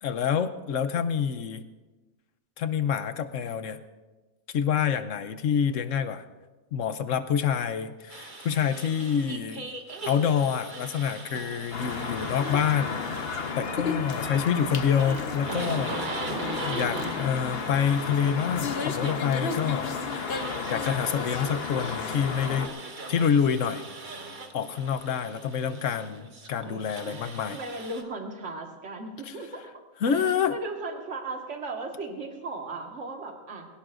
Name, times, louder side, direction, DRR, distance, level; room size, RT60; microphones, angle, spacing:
voice 1, 0.0-1.6 2.6-3.8 4.5-6.2 6.7-9.7 10.0-13.3 13.6-20.0 20.7-22.7 23.1-23.8 24.5-27.6 29.3-29.4 30.0-30.6, left 7 dB, 65° left, 11 dB, 1.1 m, -27 dB
sound 1, 8.1-28.0, right 3 dB, 35° right, 1.3 m, -40 dB
sound 2, 11.7-22.7, left 5 dB, 50° left, 1.0 m, -32 dB
voice 2, 27.0-29.6 30.1-33.7, right 3 dB, 55° right, 2 dB, 2.0 m, -37 dB
21.5 x 17.5 x 2.6 m, 1.2 s
omnidirectional pair, 1.5 m